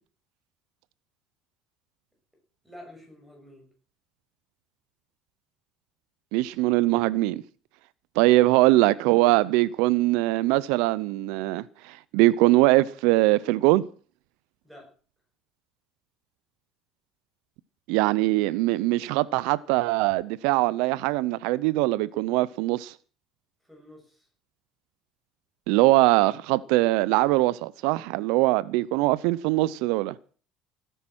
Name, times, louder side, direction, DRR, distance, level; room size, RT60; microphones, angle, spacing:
voice 1, 2.6-3.7 14.6-14.9 23.7-24.3, left 1 dB, 5° right, 6.6 m, -48 dB
voice 2, 6.3-7.4 8.2-13.8 17.9-22.9 25.7-30.1, right 19 dB, 80° right, 0.6 m, -22 dB
17.5 x 10.0 x 6.2 m
cardioid pair, 160°, 0 cm